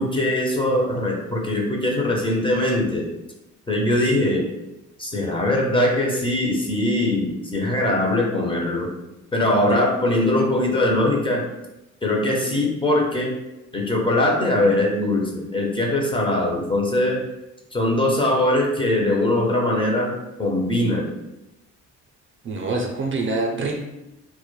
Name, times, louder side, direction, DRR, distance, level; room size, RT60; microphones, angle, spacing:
voice 1, 0.0-3.1 3.7-4.5 5.0-8.9 9.3-11.4 12.0-13.3 13.7-17.2 17.7-21.1, left 1 dB, 15° left, -1 dB, 0.5 m, -21 dB
voice 2, 22.4-23.7, right 3 dB, 40° right, 0 dB, 0.5 m, -25 dB
2.2 x 2.1 x 3.0 m, 0.94 s
cardioid pair, 90°, 30 cm